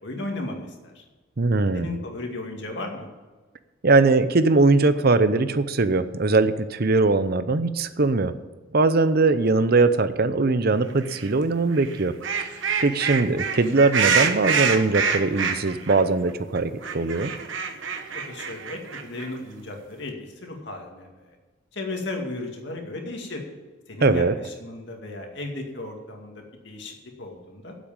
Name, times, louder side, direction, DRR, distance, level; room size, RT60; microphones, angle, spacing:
voice 1, 0.0-1.0 1.7-3.1 18.1-21.4 21.7-23.4 23.9-27.7, left 2 dB, 60° left, 2 dB, 2.3 m, -35 dB
voice 2, 1.4-2.0 3.8-8.3 8.7-12.1 12.8-17.3 24.0-24.3, right 3 dB, 50° right, 12 dB, 0.7 m, -21 dB
sound 1, 11.1-11.3 11.7-16.0 16.3-16.4 16.6-19.4, right 6 dB, 65° right, 1.2 m, -26 dB
9.3 x 8.2 x 8.7 m, 1.3 s
head